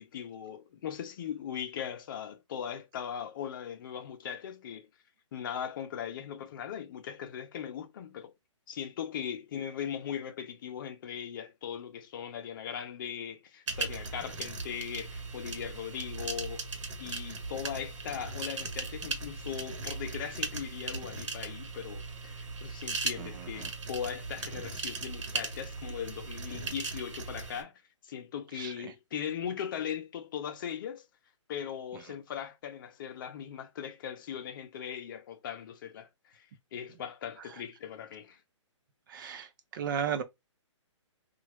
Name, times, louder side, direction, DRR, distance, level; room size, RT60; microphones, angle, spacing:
voice 1, 0.0-4.9 5.3-8.3 8.7-16.7 17.0-27.7 28.1-31.0 31.5-36.5 36.7-38.4, left 8 dB, 40° left, 0.7 m, -39 dB
sound 1, 13.7-27.6, right 3 dB, 70° right, 1.2 m, -38 dB
voice 2, 23.2-23.7 28.5-28.9 39.1-40.2, right 8 dB, 40° right, 0.6 m, -35 dB
2.9 x 2.5 x 3.0 m
hypercardioid pair, 150°, 16 cm